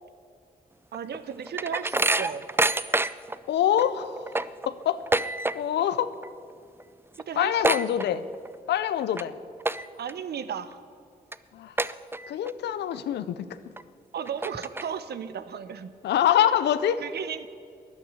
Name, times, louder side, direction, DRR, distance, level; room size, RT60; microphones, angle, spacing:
sound 1, 0.9-3.4 3.8-3.9 4.2-5.9 6.1-6.5 6.8-6.9 7.1-8.5 9.0-9.2 9.6-10.1 10.6-10.7 11.3-11.4 11.8-12.5 12.9-13.0 13.8-13.9 14.2-15.1, right 2 dB, 15° right, 0.4 m, -27 dB
voice 1, 0.9-2.4 7.3-7.6 7.9-8.1 10.0-10.8 14.1-15.9 17.0-17.5, right 8 dB, 75° right, 13 dB, 0.7 m, -35 dB
voice 2, 3.5-4.3 4.7-5.0 5.5-6.1 7.4-8.2 8.7-9.4 11.5-11.8 12.3-13.6 16.0-17.0, left 10 dB, 85° left, 13 dB, 0.5 m, -25 dB
12.0 x 9.7 x 8.1 m, 2.3 s
supercardioid pair, 45°, 17 cm